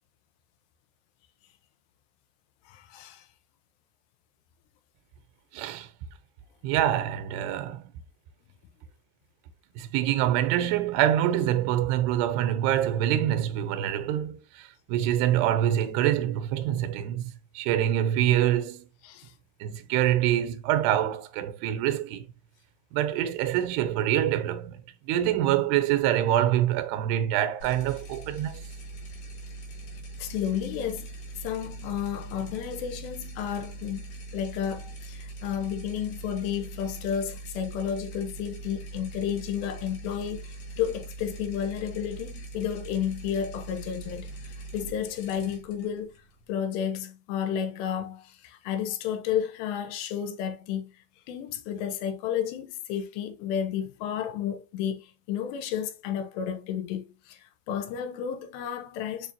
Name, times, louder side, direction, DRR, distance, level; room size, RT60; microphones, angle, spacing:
voice 1, 2.7-3.3 19.0-19.3 30.2-31.1 31.4-40.4 40.8-44.3 44.7-46.1 46.5-50.8 51.3-59.3, left 9 dB, 85° left, 3.0 m, -32 dB
voice 2, 5.5-5.9 6.6-7.8 9.8-18.8 19.6-22.2 22.9-24.8 25.1-28.6, right 12 dB, 90° right, 2.8 m, -25 dB
sound 1, 27.6-46.9, right 3 dB, 60° left, 3.3 m, -42 dB
6.8 x 4.9 x 2.8 m
omnidirectional pair, 4.8 m